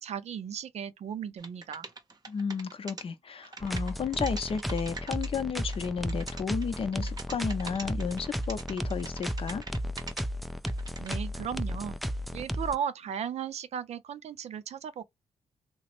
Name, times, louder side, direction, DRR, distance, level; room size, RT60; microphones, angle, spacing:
voice 1, 0.0-1.9 11.0-12.0 12.3-15.0, right 8 dB, 65° right, 0.4 m, -36 dB
sound 1, 1.4-3.0 3.4-5.3 5.6-10.2 10.5-11.2, right 3 dB, 35° right, 0.7 m, -43 dB
voice 2, 2.3-9.6, left 6 dB, 50° left, 0.6 m, -33 dB
sound 2, 3.6-12.7, equal, ahead, 0.3 m, -34 dB
2.9 x 2.0 x 2.9 m
cardioid pair, 65°, 12 cm